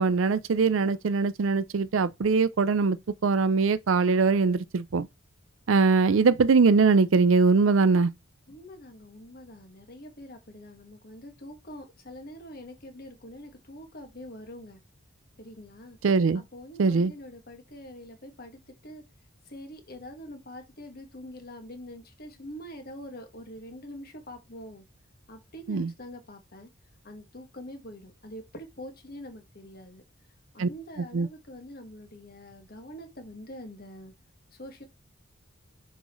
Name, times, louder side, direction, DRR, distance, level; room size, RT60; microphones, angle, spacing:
voice 1, 0.0-3.0 3.2-5.1 5.7-8.1 16.0-16.4 16.8-17.1 25.7-25.9 30.6-30.7 31.1-31.3, right 4 dB, 70° right, 0.5 m, -22 dB
voice 2, 8.5-14.8 15.4-16.0 16.3-19.0 19.4-24.8 25.3-26.7 27.0-30.0 30.5-34.1 34.5-34.8, equal, 50° left, 1.8 m, -44 dB
6.2 x 5.1 x 3.1 m
head